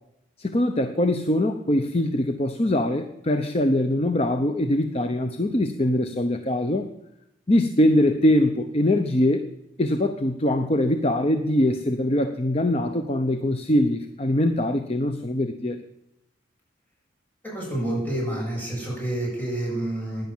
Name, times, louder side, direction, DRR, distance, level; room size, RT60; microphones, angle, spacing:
voice 1, 0.4-6.9 7.5-9.5 9.8-15.8, left 1 dB, 35° left, 8 dB, 0.8 m, -22 dB
voice 2, 17.4-20.2, right 1 dB, 10° left, -4 dB, 7.9 m, -28 dB
16.5 x 10.5 x 7.3 m, 0.86 s
head